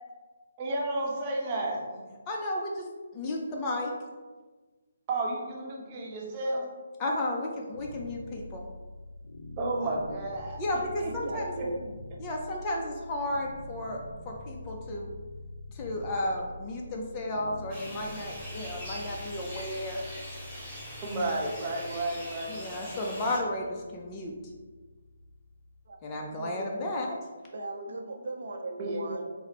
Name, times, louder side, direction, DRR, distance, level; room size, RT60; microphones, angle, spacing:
voice 1, 0.6-2.0 5.1-6.7 9.6-10.6 11.6-11.7 21.0-22.6 28.8-29.1, right 2 dB, 25° right, -2 dB, 0.8 m, -32 dB
voice 2, 2.3-2.9 3.1-3.9 7.0-8.7 10.6-11.4 12.2-14.0 14.2-15.1 15.7-20.0 22.5-24.3 26.0-27.2, left 1 dB, 20° left, -1 dB, 0.4 m, -33 dB
sound 1, 7.7-26.8, left 1 dB, 85° left, 0.4 m, -46 dB
voice 3, 11.0-11.9 25.9-26.0 26.4-26.8 27.5-29.3, right 2 dB, 65° right, 2 dB, 0.6 m, -38 dB
sound 2, 17.7-23.4, equal, 5° left, 1.4 m, -43 dB
4.2 x 2.0 x 4.1 m, 1.3 s
hypercardioid pair, 160°, 0 cm